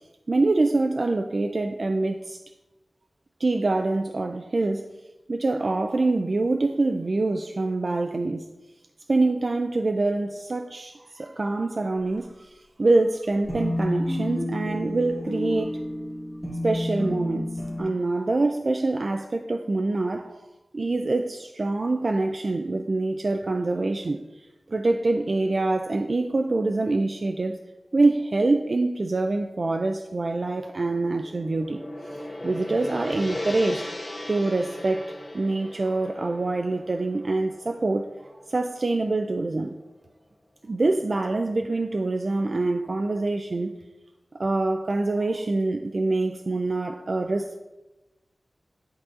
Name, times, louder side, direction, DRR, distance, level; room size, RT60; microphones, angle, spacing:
voice 1, 0.3-2.4 3.4-4.9 5.3-8.5 9.1-15.8 16.6-20.5 20.7-27.6 27.9-31.8 32.1-39.8 40.6-43.8 44.3-47.6, right 2 dB, 50° right, 5 dB, 0.3 m, -25 dB
sound 1, 13.5-17.8, left 1 dB, 5° left, 1.5 m, -30 dB
Gong, 30.8-39.1, left 1 dB, 40° left, 2.0 m, -38 dB
10.5 x 4.0 x 2.5 m, 1.0 s
wide cardioid pair, 95°, 0 cm